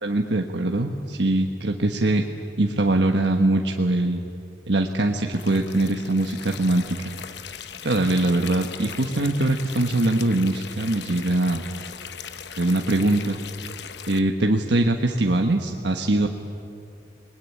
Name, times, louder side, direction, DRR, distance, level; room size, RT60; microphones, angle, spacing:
voice 1, 0.0-2.2 2.6-4.3 4.7-7.0 7.8-11.6 12.6-13.4 14.1-16.3, right 2 dB, 65° right, 3 dB, 1.4 m, -22 dB
sound 1, 5.3-14.2, left 7 dB, 65° left, 1.1 m, -39 dB
28.0 x 20.5 x 9.8 m, 2.6 s
head